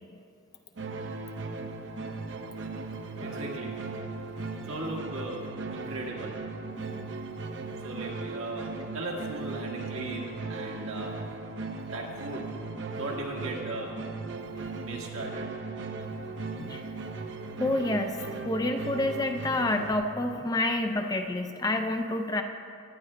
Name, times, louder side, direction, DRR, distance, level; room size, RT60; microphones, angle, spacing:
sound 1, 0.8-19.9, right 3 dB, 60° right, 0.6 m, -37 dB
voice 1, 3.2-3.8 4.6-6.4 7.8-11.2 11.8-12.5 12.9-13.9 14.8-15.5, right 1 dB, 85° right, -2 dB, 1.6 m, -37 dB
voice 2, 17.6-22.4, left 2 dB, 20° left, 5 dB, 0.4 m, -28 dB
17.5 x 11.0 x 2.2 m, 2.4 s
head